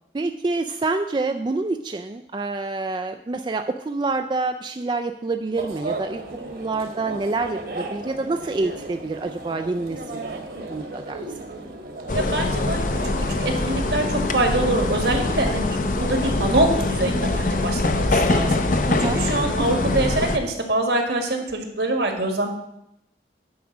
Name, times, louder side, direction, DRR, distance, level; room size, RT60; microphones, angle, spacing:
voice 1, 0.1-6.2 6.5-11.2 18.9-19.2 19.6-19.8, right 3 dB, 25° right, 7 dB, 0.3 m, -27 dB
sound 1, 5.5-19.9, right 2 dB, 55° right, 1.3 m, -36 dB
sound 2, 12.1-20.4, left 2 dB, 45° left, 0.6 m, -23 dB
voice 2, 12.1-12.8 13.4-22.5, right 2 dB, 75° right, 3 dB, 1.7 m, -24 dB
9.4 x 4.9 x 7.2 m, 0.80 s
head